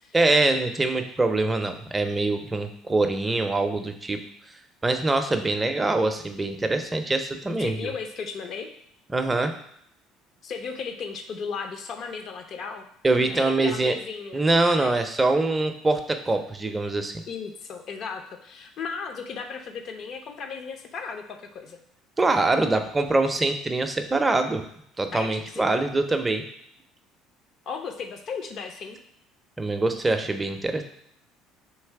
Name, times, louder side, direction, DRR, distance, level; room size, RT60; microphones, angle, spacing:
voice 1, 0.1-4.2 4.8-7.8 9.1-9.5 13.0-13.9 14.3-17.1 22.2-24.6 25.0-26.4 29.6-30.8, right 2 dB, 20° right, 6 dB, 0.5 m, -24 dB
voice 2, 7.6-8.7 10.4-12.9 13.1-14.4 14.8-15.0 17.3-21.8 25.1-25.7 27.7-29.0, left 5 dB, 55° left, 5 dB, 0.6 m, -35 dB
3.2 x 3.1 x 4.6 m, 0.70 s
supercardioid pair, 85°, 0 cm